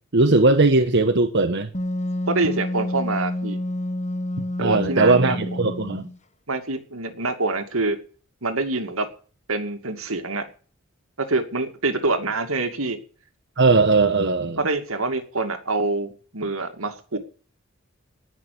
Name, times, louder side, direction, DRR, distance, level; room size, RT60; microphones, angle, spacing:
voice 1, 0.1-1.7 4.6-6.1 13.6-14.6, right 3 dB, 60° right, 1.3 m, -19 dB
Wind instrument woodwind instrument, 1.7-6.2, left 1 dB, 35° left, 1.5 m, -28 dB
voice 2, 2.3-3.6 4.6-5.4 6.5-8.0 8.4-9.1 9.5-10.5 11.2-13.0 14.6-17.2, right 3 dB, 85° right, 2.4 m, -25 dB
19.0 x 6.4 x 8.6 m
head